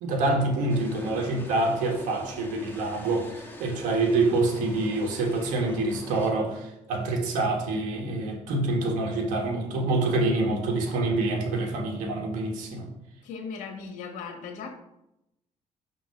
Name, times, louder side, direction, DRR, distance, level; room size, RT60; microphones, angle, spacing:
voice 1, 0.0-12.9, right 2 dB, 85° right, 2 dB, 1.5 m, -26 dB
sound 1, 0.7-6.3, left 1 dB, 15° left, 1.4 m, -44 dB
voice 2, 13.2-14.7, left 5 dB, 80° left, 4 dB, 1.3 m, -37 dB
5.9 x 3.8 x 5.9 m, 0.86 s
cardioid pair, 80°, 13 cm